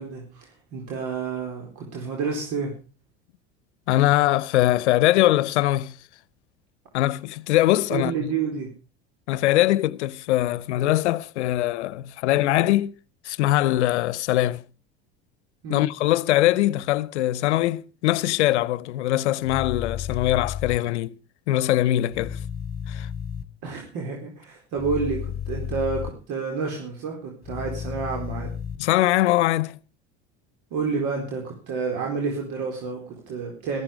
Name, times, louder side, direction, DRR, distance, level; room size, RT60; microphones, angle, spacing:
voice 1, 0.0-2.7 7.9-8.7 15.6-15.8 23.6-28.6 30.7-33.8, right 5 dB, 60° right, 4.3 m, -29 dB
voice 2, 3.9-5.9 6.9-8.3 9.3-12.9 13.2-14.6 15.7-21.2 21.5-22.4 22.9-23.1 28.8-29.8, left 15 dB, 85° left, 0.8 m, -22 dB
sound 1, 19.4-20.8 22.1-23.4 24.8-26.1 27.4-28.8, left 8 dB, 30° left, 2.1 m, -32 dB
14.5 x 14.0 x 5.1 m
hypercardioid pair, 90°, 33 cm